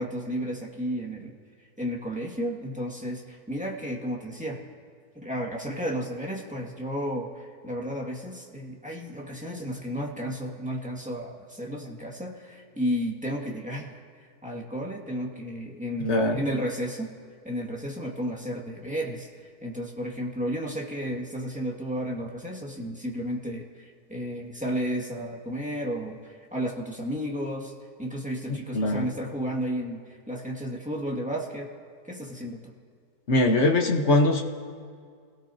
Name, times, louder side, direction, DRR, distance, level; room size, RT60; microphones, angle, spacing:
voice 1, 0.0-1.4 1.8-4.6 5.2-17.1 17.4-27.7 28.0-31.7 32.0-32.7, equal, 5° right, -2 dB, 1.9 m, -33 dB
voice 2, 16.0-16.4 28.5-29.0 33.3-34.4, left 2 dB, 45° left, 3 dB, 1.4 m, -22 dB
28.5 x 18.0 x 2.8 m, 2.1 s
omnidirectional pair, 1.7 m